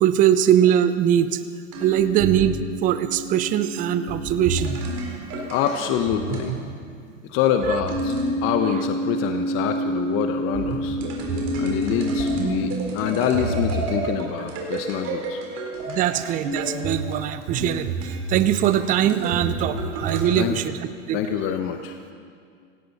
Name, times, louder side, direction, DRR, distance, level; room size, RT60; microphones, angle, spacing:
voice 1, 0.0-1.4 1.8-4.8 15.9-20.8 21.1-21.5, right 10 dB, 20° right, 12 dB, 0.6 m, -21 dB
sound 1, 1.7-6.7 7.6-20.5, right 2 dB, 40° right, 3.6 m, -28 dB
voice 2, 5.5-6.5 7.3-8.1 8.4-11.0 11.6-15.4 20.4-20.6 21.1-22.0, left 8 dB, 35° left, 6 dB, 0.9 m, -25 dB
17.0 x 17.0 x 4.2 m, 2.2 s
hypercardioid pair, 120°, 39 cm